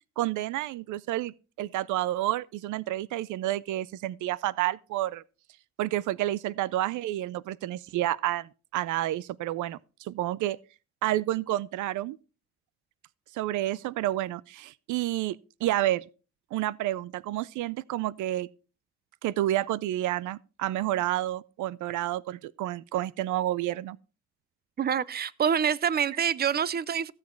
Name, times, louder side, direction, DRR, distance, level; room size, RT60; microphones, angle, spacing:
voice 1, 0.2-5.2 5.8-10.6 11.0-12.2 13.3-16.0 16.5-18.5 19.2-24.0, right 14 dB, 80° right, 0.5 m, -30 dB
voice 2, 24.8-27.1, right 8 dB, 30° right, 0.6 m, -26 dB
16.0 x 7.3 x 4.5 m
cardioid pair, 90°, 30 cm